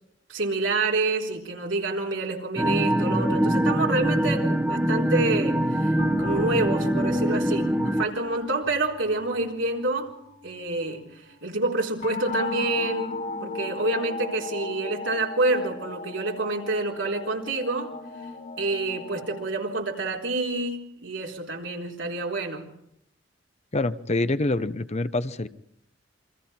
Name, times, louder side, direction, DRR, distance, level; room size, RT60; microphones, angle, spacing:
voice 1, 0.3-10.1 10.4-17.9 18.6-22.7, right 2 dB, 85° right, 0 dB, 3.8 m, -28 dB
sound 1, 2.6-8.0, equal, 10° right, 1.1 m, -23 dB
sound 2, 6.0-11.3 12.0-19.4, left 3 dB, 55° left, 2.5 m, -37 dB
voice 2, 23.7-25.5, left 2 dB, 35° left, 13 dB, 0.8 m, -26 dB
28.0 x 24.5 x 4.4 m, 0.77 s
head